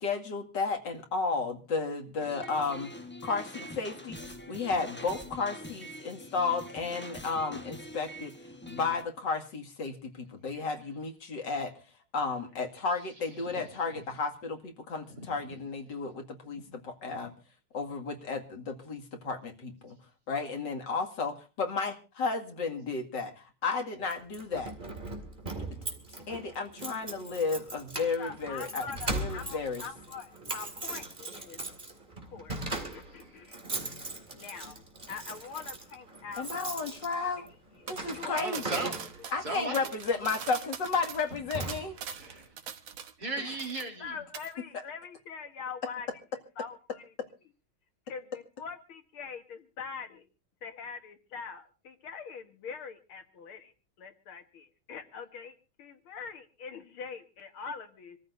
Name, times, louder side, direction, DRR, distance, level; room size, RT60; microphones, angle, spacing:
voice 1, 0.0-2.9 3.2-4.2 4.5-8.3 8.7-11.7 12.1-17.3 17.7-20.0 20.3-23.3 23.6-24.7 26.3-28.9 29.1-29.8 36.4-37.4 37.9-38.8 39.3-42.0, left 4 dB, 60° left, 2.8 m, -33 dB
sound 1, 2.2-9.0, equal, 10° left, 0.8 m, -44 dB
voice 2, 13.4-13.7 15.1-15.5 16.6-16.8 17.1-17.3 33.2-33.4 38.3-39.9 42.2-42.5 43.2-44.2, right 2 dB, 45° right, 3.9 m, -38 dB
Keys jangling, 24.1-39.5 40.2-40.5 40.9-41.1 41.3-42.2, right 2 dB, 25° right, 2.4 m, -39 dB
voice 3, 28.2-31.6 32.2-32.6 32.9-33.6 34.3-36.5 36.8-36.9 37.4-38.4 39.3-39.4 43.4-43.6 44.0-46.1 46.6-47.1 48.1-50.3 50.6-58.2, left 6 dB, 85° left, 2.4 m, -43 dB
sound 2, 37.9-43.3 43.6-44.1 44.3-44.5, right 7 dB, 70° right, 2.0 m, -42 dB
26.5 x 14.5 x 2.6 m
omnidirectional pair, 2.3 m